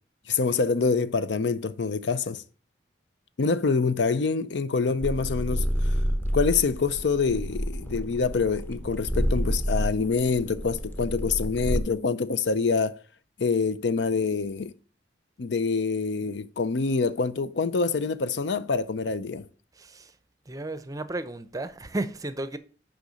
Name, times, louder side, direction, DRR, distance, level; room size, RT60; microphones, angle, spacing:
voice 1, 0.3-2.4 3.4-5.9 6.3-13.0 13.4-14.7 15.4-19.5, left 4 dB, 70° left, 0.5 m, -26 dB
sound 1, 5.0-11.8, equal, 10° left, 0.8 m, -29 dB
voice 2, 19.8-20.1 20.5-22.6, right 2 dB, 20° right, 0.6 m, -33 dB
6.7 x 5.1 x 6.3 m
head